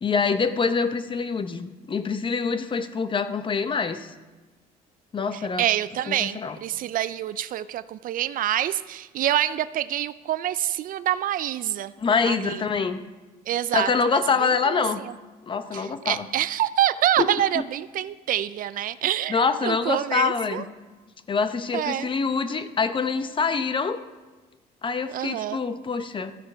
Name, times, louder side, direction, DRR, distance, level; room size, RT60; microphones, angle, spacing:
voice 1, 0.0-4.1 5.1-5.7 6.1-6.6 12.0-13.0 13.7-15.0 15.4-16.3 17.2-17.6 19.3-20.7 21.3-24.0 24.8-26.3, left 5 dB, 30° left, 10 dB, 0.8 m, -25 dB
voice 2, 5.6-11.9 12.2-12.6 13.5-14.8 15.7-20.6 21.7-22.1 25.1-25.6, right 12 dB, 55° right, 16 dB, 0.4 m, -26 dB
13.5 x 7.5 x 5.6 m, 1.2 s
cardioid pair, 110°, 17 cm